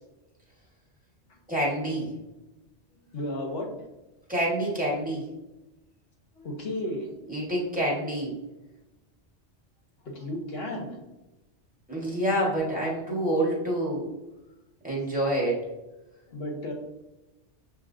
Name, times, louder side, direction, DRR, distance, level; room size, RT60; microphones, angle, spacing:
voice 1, 1.5-2.1 4.3-5.2 7.3-8.3 11.9-14.0 14.8-15.6, right 1 dB, 5° right, -5 dB, 1.3 m, -27 dB
voice 2, 2.9-3.7 6.3-7.1 10.0-11.0 16.3-16.7, left 1 dB, 60° left, 1 dB, 1.0 m, -34 dB
6.9 x 2.7 x 2.5 m, 1.0 s
omnidirectional pair, 1.2 m